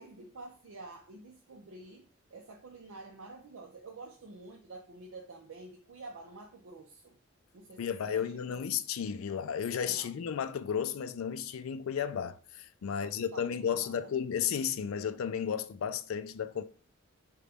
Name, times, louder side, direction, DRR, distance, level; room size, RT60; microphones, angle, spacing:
voice 1, 0.0-2.0 2.3-7.2 7.5-8.7 9.8-10.1 12.8-14.1, right 3 dB, 80° right, 0.5 m, -49 dB
voice 2, 7.8-16.6, left 8 dB, 75° left, 0.3 m, -33 dB
3.9 x 2.2 x 3.3 m
head